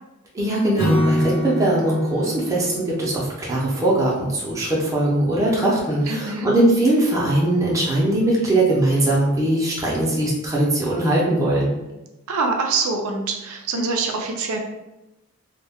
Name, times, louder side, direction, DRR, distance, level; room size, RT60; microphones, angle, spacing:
voice 1, 0.3-11.7, right 1 dB, 15° right, -5 dB, 0.5 m, -20 dB
Acoustic guitar / Strum, 0.8-4.1, left 1 dB, 75° left, 0.8 m, -26 dB
voice 2, 6.1-6.5 12.3-14.6, right 4 dB, 90° right, 3 dB, 0.4 m, -24 dB
2.1 x 2.1 x 3.4 m, 1.0 s
head